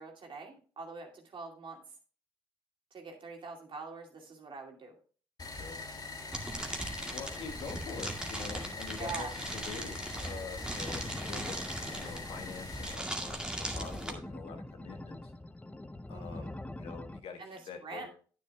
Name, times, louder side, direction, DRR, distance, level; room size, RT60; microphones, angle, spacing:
voice 1, 0.0-1.8 2.9-5.0 9.0-9.3 16.1-16.5 17.4-18.1, right 4 dB, 55° right, 1 dB, 2.5 m, -44 dB
sound 1, 5.4-13.0, left 3 dB, 40° left, 1.8 m, -43 dB
voice 2, 5.5-5.8 7.1-11.6 11.9-15.3 16.1-17.4 17.7-18.1, left 5 dB, 70° left, 5 dB, 1.5 m, -45 dB
sound 2, 6.3-14.1, right 1 dB, 10° right, 2.0 m, -39 dB
sound 3, 10.8-17.2, left 1 dB, 15° left, 0.7 m, -44 dB
9.8 x 9.6 x 2.3 m, 0.39 s
supercardioid pair, 50°, 10 cm